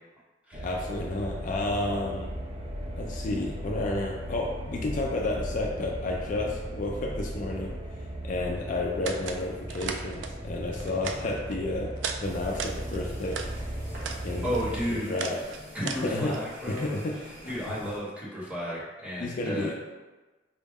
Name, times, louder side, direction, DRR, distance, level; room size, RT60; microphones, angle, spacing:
sound 1, 0.5-15.0, equal, 30° right, 0.5 m, -37 dB
voice 1, 0.6-2.3 3.0-7.7 8.2-11.9 12.2-13.4 14.2-15.4 15.9-16.3 16.7-17.9 19.2-19.7, left 2 dB, 45° left, 0 dB, 0.4 m, -31 dB
sound 2, 9.0-9.4 9.7-10.3 10.7-11.6 12.0-12.2 12.5-13.5 13.9-14.2 14.5-16.4, right 6 dB, 85° right, 0.3 m, -36 dB
sound 3, 12.2-18.0, equal, 55° right, 0.9 m, -46 dB
voice 2, 14.4-15.1 15.7-16.9 17.5-19.7, equal, 5° right, -6 dB, 0.9 m, -33 dB
4.5 x 2.1 x 3.4 m, 1.2 s
head